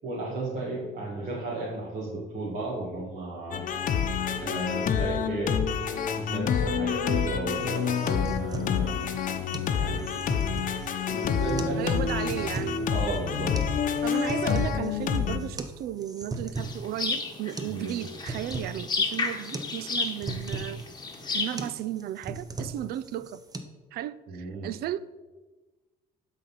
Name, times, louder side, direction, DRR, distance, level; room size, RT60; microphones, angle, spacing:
voice 1, 0.0-3.6 3.9-4.0 4.4-5.6 6.2-9.2 9.8-10.1 11.1-12.0 12.9-13.6 17.7-18.0 24.3-24.7, right 2 dB, 45° right, -6 dB, 2.2 m, -34 dB
sound 1, 3.5-15.4, left 7 dB, 50° left, 0.9 m, -28 dB
sound 2, 7.6-23.6, right 3 dB, 20° right, 0.9 m, -39 dB
voice 2, 11.8-12.9 14.0-20.8 21.3-23.4 23.9-25.0, right 12 dB, 70° right, 17 dB, 0.4 m, -34 dB
sound 3, 16.6-21.7, left 4 dB, 25° left, 1.3 m, -32 dB
11.5 x 4.1 x 5.7 m, 1.2 s
cardioid pair, 110°, 17 cm